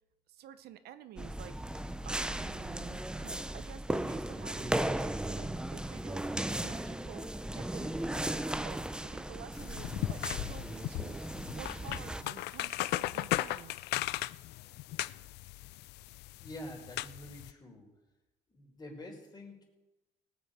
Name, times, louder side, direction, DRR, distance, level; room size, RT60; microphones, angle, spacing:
voice 1, 0.3-1.5 2.0-6.3 6.6-7.3 7.5-11.2 11.5-13.8, right 11 dB, 70° right, 12 dB, 0.8 m, -50 dB
sound 1, 1.2-12.2, right 1 dB, 5° right, 0.6 m, -36 dB
sound 2, 9.5-17.5, left 17 dB, 80° left, 0.4 m, -37 dB
voice 2, 16.4-17.9 18.5-19.6, left 1 dB, 25° left, 1 dB, 4.0 m, -47 dB
18.0 x 9.0 x 5.0 m, 1.0 s
cardioid pair, 110°, 17 cm